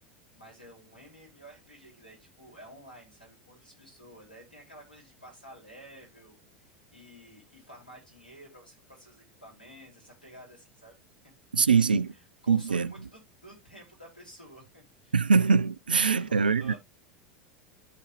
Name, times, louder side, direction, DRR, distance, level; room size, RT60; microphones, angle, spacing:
voice 1, 0.3-11.0 11.2-11.3 12.1-15.2 16.1-16.8, equal, 90° left, 5.0 m, -51 dB
voice 2, 11.5-12.1 12.5-12.9 15.1-16.7, right 5 dB, 80° right, 0.4 m, -23 dB
12.0 x 5.0 x 3.0 m
figure-of-eight pair, 80°, 5 cm